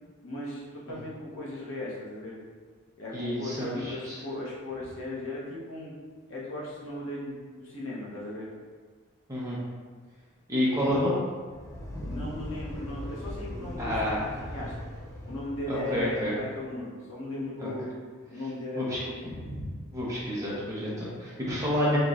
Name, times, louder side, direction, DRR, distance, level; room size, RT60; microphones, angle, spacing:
voice 1, 0.2-2.4 3.0-5.9 6.3-8.5 12.0-13.9 14.4-14.7 15.3-17.9 18.3-19.3, left 2 dB, 80° left, -6 dB, 1.0 m, -37 dB
voice 2, 3.1-4.2 9.3-9.6 10.5-11.2 11.9-12.1 13.8-14.2 15.7-16.3 17.6-17.7 18.7-19.0 19.5-19.6 19.9-22.0, equal, 15° right, -7 dB, 0.9 m, -29 dB
sound 1, 11.3-16.5, left 1 dB, 15° left, 0.5 m, -40 dB
4.4 x 3.1 x 2.5 m, 1.5 s
head